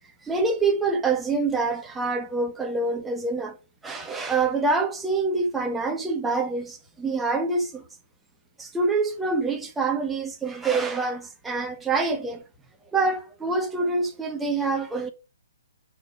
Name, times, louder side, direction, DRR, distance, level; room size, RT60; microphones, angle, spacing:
voice 1, 0.3-3.5 3.8-7.8 8.6-12.4 12.9-15.1, right 3 dB, 10° right, 1.2 m, -26 dB
6.3 x 4.4 x 5.3 m
hypercardioid pair, 140°, 0 cm